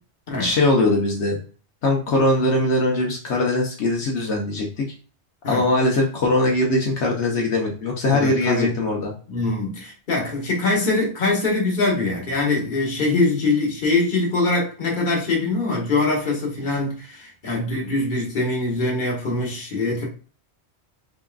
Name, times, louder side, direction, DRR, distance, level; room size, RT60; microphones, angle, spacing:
voice 1, 0.4-1.4 1.8-4.9 5.5-9.1, left 2 dB, 75° left, 1.1 m, -21 dB
voice 2, 8.1-8.7 9.3-20.1, left 2 dB, 45° left, 1.3 m, -23 dB
4.2 x 3.6 x 2.3 m
omnidirectional pair, 1.2 m